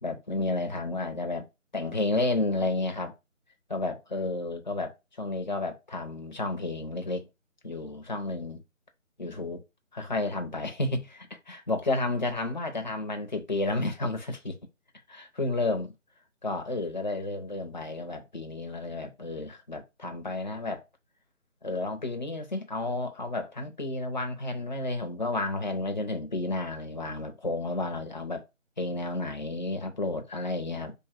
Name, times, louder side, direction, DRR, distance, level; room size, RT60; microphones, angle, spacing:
voice 1, 0.0-1.5 1.7-3.1 3.7-7.3 7.6-8.6 9.2-9.6 9.9-14.6 15.1-15.9 16.4-20.8 21.6-28.4 28.8-30.9, left 2 dB, 35° left, 0.8 m, -31 dB
3.7 x 2.7 x 4.4 m
figure-of-eight pair, 170°, 39 cm